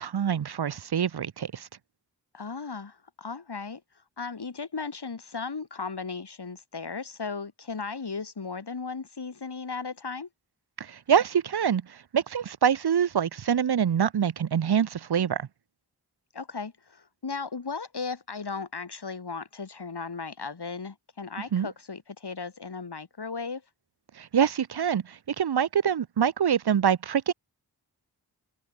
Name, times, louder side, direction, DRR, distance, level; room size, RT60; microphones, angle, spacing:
voice 1, 0.0-1.7 10.8-15.5 21.5-21.7 24.2-27.3, right 8 dB, 65° right, 0.8 m, -25 dB
voice 2, 2.3-3.8 4.2-10.3 16.3-23.6, left 4 dB, 70° left, 6.5 m, -36 dB
wide cardioid pair, 65°, 41 cm